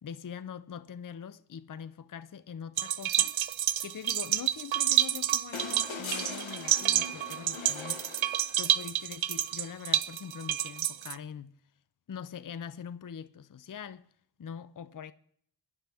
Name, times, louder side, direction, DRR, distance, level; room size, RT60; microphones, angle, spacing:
voice 1, 0.0-3.3 3.8-8.0 8.6-11.6 12.1-14.0 14.4-15.1, left 7 dB, 45° left, 0.5 m, -43 dB
sound 1, 2.8-11.2, right 11 dB, 85° right, 0.6 m, -29 dB
sound 2, 5.5-8.9 10.4-10.5, left 4 dB, 80° left, 1.3 m, -41 dB
23.5 x 10.5 x 3.5 m
wide cardioid pair, 60°, 46 cm